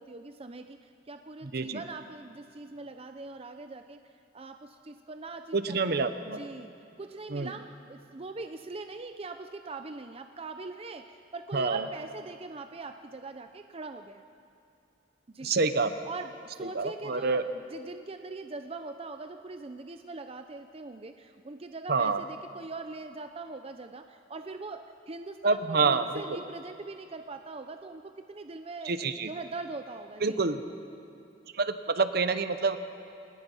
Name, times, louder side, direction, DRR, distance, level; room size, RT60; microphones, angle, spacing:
voice 1, 0.0-4.0 4.3-6.7 7.0-14.2 15.3-15.5 16.0-28.9 29.2-30.4, right 3 dB, 35° right, 7 dB, 0.6 m, -42 dB
voice 2, 5.5-6.4 7.3-7.5 11.5-11.9 15.4-15.9 16.7-17.4 21.9-22.2 25.4-26.4 28.8-29.3 30.2-30.6 31.5-32.8, right 4 dB, 60° right, 10 dB, 0.9 m, -27 dB
26.0 x 19.5 x 5.5 m, 2.6 s
head